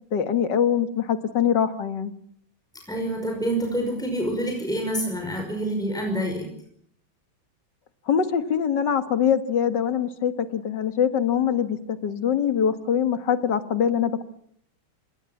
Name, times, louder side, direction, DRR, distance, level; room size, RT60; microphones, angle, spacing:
voice 1, 0.1-2.1 8.1-14.2, left 8 dB, 60° left, 10 dB, 2.2 m, -23 dB
voice 2, 2.9-6.5, right 1 dB, ahead, 2 dB, 5.4 m, -27 dB
27.0 x 20.5 x 7.2 m, 0.67 s
omnidirectional pair, 2.2 m